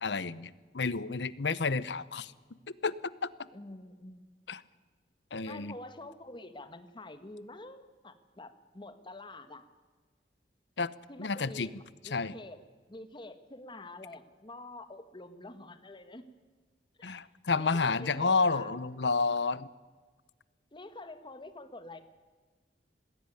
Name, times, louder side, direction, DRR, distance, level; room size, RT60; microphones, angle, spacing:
voice 1, 0.0-2.3 2.8-3.0 3.2-3.3 4.5-4.6 5.3-5.8 10.8-10.9 11.2-11.7 12.1-12.3 17.0-19.7, left 4 dB, 75° left, 18 dB, 0.9 m, -30 dB
voice 2, 3.5-4.3 5.4-9.6 11.1-12.6 12.9-16.2 17.0-17.2 17.5-18.7 20.7-22.0, left 2 dB, 30° left, 10 dB, 1.5 m, -47 dB
21.0 x 16.0 x 9.8 m, 1.4 s
head